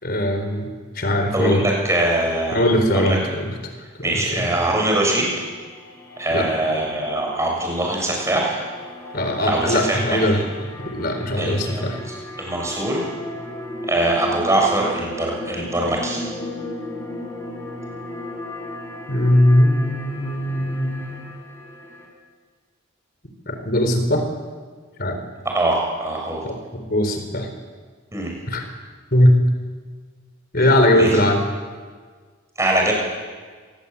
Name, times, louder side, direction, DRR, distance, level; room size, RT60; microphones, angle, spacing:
voice 1, 0.0-1.6 2.5-3.5 4.0-4.5 6.3-6.5 9.1-10.4 10.8-12.0 19.1-21.3 23.5-24.2 25.0-25.2 26.4-27.5 28.5-28.6 29.1-29.4 30.5-31.4, left 1 dB, 45° left, 7 dB, 4.0 m, -20 dB
voice 2, 1.3-2.6 2.9-3.2 4.0-5.3 6.2-8.6 9.4-10.3 11.4-13.1 13.9-16.3 25.5-26.4 28.1-28.3 30.9-31.1 32.6-32.9, right 1 dB, 15° right, -1 dB, 7.0 m, -22 dB
sound 1, 5.2-22.1, left 1 dB, 10° left, 5.1 m, -35 dB
25.5 x 20.0 x 8.6 m, 1.5 s
head